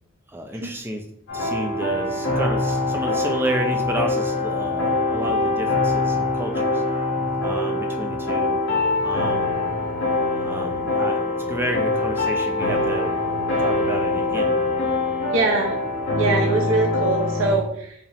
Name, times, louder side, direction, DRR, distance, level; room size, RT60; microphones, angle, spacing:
voice 1, 0.3-1.0 1.3-6.8 7.4-8.6 9.0-9.6 10.3-13.1 13.6-14.5, right 1 dB, 10° right, 3 dB, 0.4 m, -31 dB
sound 1, 1.3-17.6, left 2 dB, 55° left, 1.4 m, -23 dB
voice 2, 15.3-15.7 16.1-17.9, right 3 dB, 60° right, 1 dB, 0.7 m, -22 dB
4.8 x 2.9 x 3.4 m, 0.69 s
head